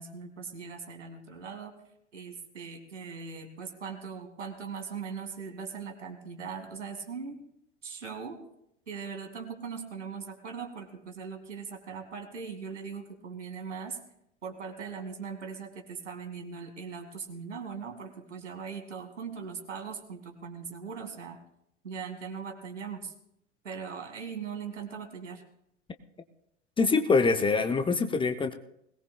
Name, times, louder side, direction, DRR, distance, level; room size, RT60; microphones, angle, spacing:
voice 1, 0.0-1.7 2.1-7.4 7.8-8.4 8.9-14.0 14.4-21.4 21.8-23.1 23.6-25.4, right 6 dB, 75° right, 6 dB, 2.2 m, -40 dB
voice 2, 26.8-28.5, left 4 dB, 15° left, 8 dB, 0.7 m, -24 dB
21.0 x 18.5 x 2.3 m, 0.75 s
figure-of-eight pair, 85°, 36 cm